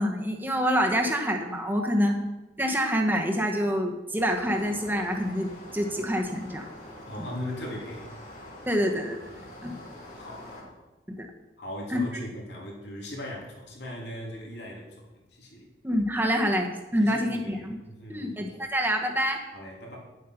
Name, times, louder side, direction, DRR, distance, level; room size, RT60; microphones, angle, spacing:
voice 1, 0.0-2.2 2.6-5.5 5.7-6.7 8.6-9.2 9.6-9.7 11.1-11.3 11.9-12.0 15.8-17.8 18.1-19.4, equal, 10° right, 2 dB, 1.3 m, -26 dB
sound 1, 4.2-10.6, left 1 dB, 45° left, 3.6 m, -45 dB
voice 2, 7.1-8.1 9.3-9.6 10.1-10.8 11.6-15.7 17.0-18.3 19.5-20.0, left 1 dB, 75° left, -2 dB, 3.1 m, -39 dB
10.5 x 7.8 x 5.9 m, 1.1 s
head